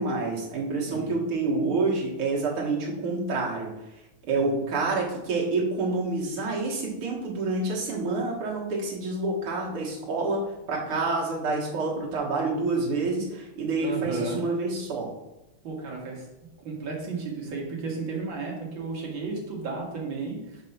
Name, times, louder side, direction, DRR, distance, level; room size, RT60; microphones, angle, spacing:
voice 1, 0.0-3.7 4.3-10.4 10.7-15.1, right 3 dB, 85° right, -3 dB, 2.4 m, -28 dB
voice 2, 13.8-14.4 15.6-16.3 16.6-20.6, right 3 dB, 65° right, -1 dB, 2.3 m, -33 dB
5.2 x 5.1 x 5.6 m, 0.97 s
omnidirectional pair, 2.4 m